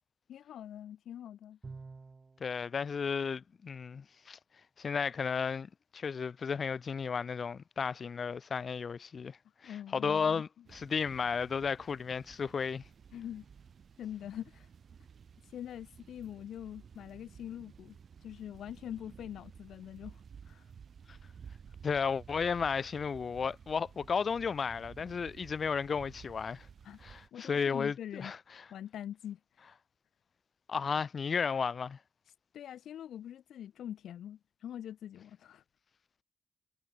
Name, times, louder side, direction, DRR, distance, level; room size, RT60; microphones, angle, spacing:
voice 1, 0.3-1.6 9.6-10.4 13.1-13.4 14.0-14.7 15.4-18.0 18.2-20.7 26.8-27.0 27.3-28.3 28.7-29.7 32.5-35.6, left 10 dB, 85° left, 0.4 m, -44 dB
Bowed string instrument, 1.6-2.5, right 4 dB, 35° right, 4.2 m, -48 dB
voice 2, 2.4-4.4 4.8-9.4 9.6-12.8 21.8-26.7 27.0-28.6 30.7-32.0, left 6 dB, 55° left, 0.7 m, -33 dB
sound 1, 10.6-27.3, right 7 dB, 60° right, 6.1 m, -54 dB
cardioid pair, 75°, 0 cm